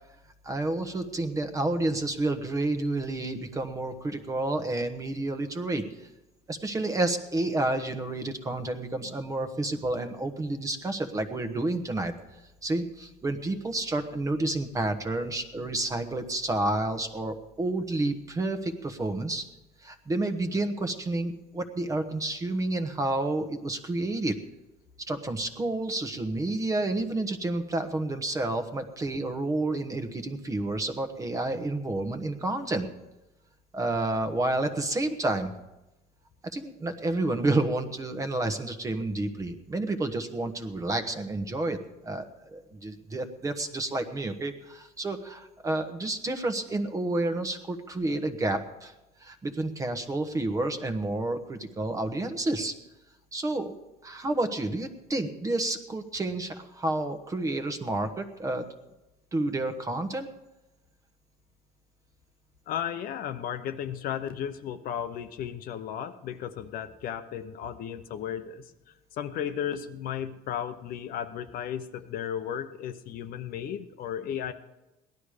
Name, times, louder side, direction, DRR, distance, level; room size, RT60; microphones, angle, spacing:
voice 1, 0.4-5.8 6.5-12.1 12.6-19.4 19.8-24.3 25.1-32.9 33.7-35.5 36.5-41.8 42.0-48.9 49.2-52.7 53.3-53.8 54.0-58.6 59.3-60.3, right 2 dB, 20° right, 8 dB, 1.2 m, -30 dB
voice 2, 62.7-68.7 69.1-74.5, left 9 dB, 55° left, 9 dB, 0.9 m, -34 dB
18.5 x 12.0 x 5.0 m, 0.98 s
cardioid pair, 140°, 17 cm